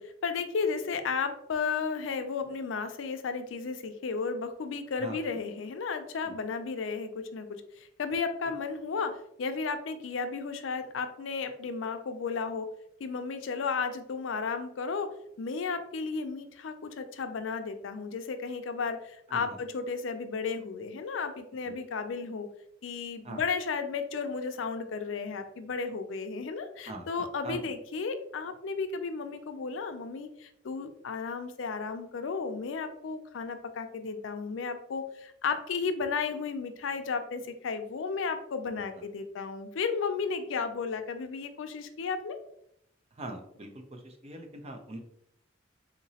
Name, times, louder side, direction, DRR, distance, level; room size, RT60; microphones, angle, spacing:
voice 1, 0.0-12.7 13.0-15.1 15.4-22.5 22.8-42.4, left 5 dB, 70° left, 8 dB, 0.4 m, -34 dB
voice 2, 43.1-45.0, right 2 dB, 35° right, 4 dB, 0.5 m, -41 dB
3.8 x 2.9 x 2.8 m, 0.74 s
head